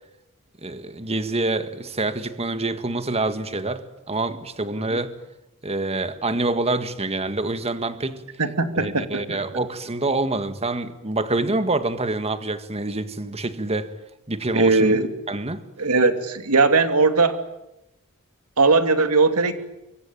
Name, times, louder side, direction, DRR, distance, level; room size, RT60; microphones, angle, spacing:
voice 1, 0.6-5.2 5.6-8.2 8.8-13.9 14.3-15.0 15.3-15.6, right 2 dB, 30° right, 1.8 m, -26 dB
voice 2, 8.4-9.4 14.5-15.1 15.8-17.4 18.6-19.5, right 3 dB, 85° right, 2.8 m, -19 dB
25.0 x 23.5 x 9.1 m
head